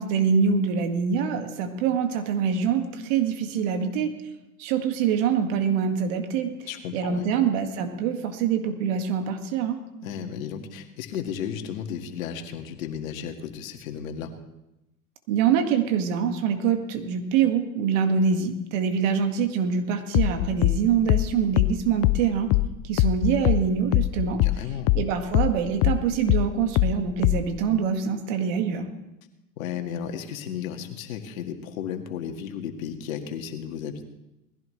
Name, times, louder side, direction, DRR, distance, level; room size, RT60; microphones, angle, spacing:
voice 1, 0.0-4.1 4.6-6.7 6.9-9.8 15.3-22.5 22.8-24.4 24.9-28.9, right 7 dB, 60° right, 6 dB, 2.1 m, -25 dB
voice 2, 6.7-7.2 10.0-14.3 24.3-24.9 29.6-34.1, left 8 dB, 75° left, 5 dB, 1.9 m, -34 dB
sound 1, 20.1-25.1 25.3-27.6, left 18 dB, 40° left, 0.4 m, -22 dB
20.0 x 15.5 x 3.3 m, 0.93 s
hypercardioid pair, 100°, 42 cm